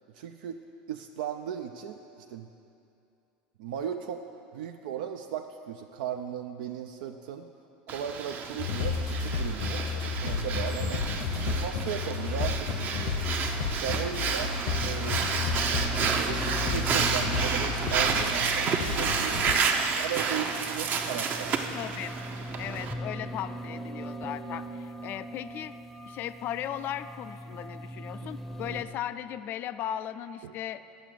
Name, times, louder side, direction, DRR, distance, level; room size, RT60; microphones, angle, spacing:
voice 1, 0.1-0.6 0.9-2.5 3.6-4.2 4.5-7.5 7.9-13.2 13.8-15.5 16.2-19.4 19.9-21.7 28.2-28.3 28.6-28.8 30.4-30.5, right 9 dB, 80° right, 5 dB, 0.4 m, -37 dB
Breathing, 7.9-22.9, right 5 dB, 40° right, 0.7 m, -30 dB
sound 1, 8.6-19.5, left 5 dB, 70° left, 0.8 m, -32 dB
sound 2, 13.4-28.8, right 1 dB, 5° left, 0.6 m, -41 dB
voice 2, 21.7-22.1 22.6-25.7 26.1-31.0, left 11 dB, 45° left, 13 dB, 0.3 m, -37 dB
7.6 x 6.3 x 6.7 m, 2.7 s
hypercardioid pair, 95°, 5 cm